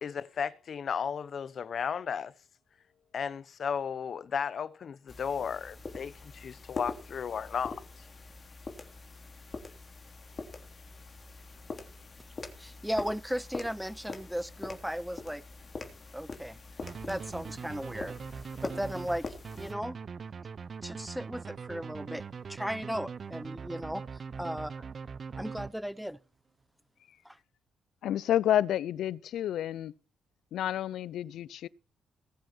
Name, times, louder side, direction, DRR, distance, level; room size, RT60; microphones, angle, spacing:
voice 1, 0.0-2.3 3.1-8.1, left 7 dB, 50° left, 0.9 m, -34 dB
sound 1, 5.1-19.7, left 3 dB, 35° left, 3.4 m, -44 dB
voice 2, 12.6-15.4 16.1-16.6 17.1-18.2 18.6-20.0 20.8-24.1 24.4-24.7 25.3-26.2 27.2-27.4, equal, ahead, 0.7 m, -36 dB
sound 2, 16.8-26.1, right 6 dB, 45° right, 0.8 m, -42 dB
voice 3, 28.0-29.9 30.5-31.7, left 11 dB, 75° left, 0.6 m, -29 dB
20.5 x 7.7 x 4.5 m
cardioid pair, 90°, 0 cm